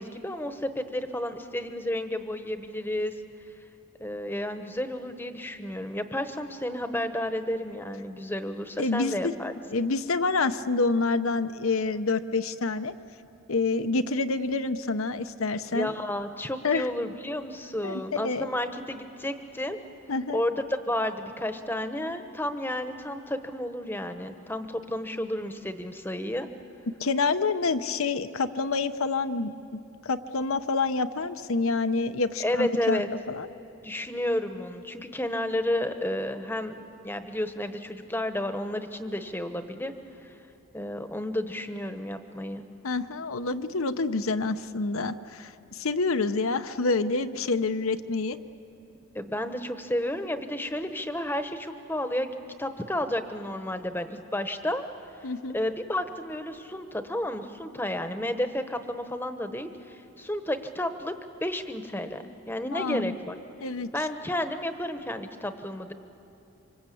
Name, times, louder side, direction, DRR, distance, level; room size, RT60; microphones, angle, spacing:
voice 1, 0.0-3.1 4.0-9.5 15.7-19.8 20.3-26.5 32.4-33.1 33.8-39.9 40.2-40.3 40.7-42.6 49.1-54.8 55.2-61.1 61.4-63.4 63.9-65.9, left 1 dB, 10° left, 8 dB, 1.0 m, -31 dB
voice 2, 8.8-9.3 9.7-12.9 13.5-15.9 16.6-16.9 17.8-18.5 20.1-20.4 27.0-33.0 33.3-33.5 42.8-48.4 55.2-55.6 62.7-63.1 63.6-63.9, left 3 dB, 75° left, 10 dB, 0.8 m, -27 dB
27.0 x 25.0 x 8.5 m, 2.8 s
head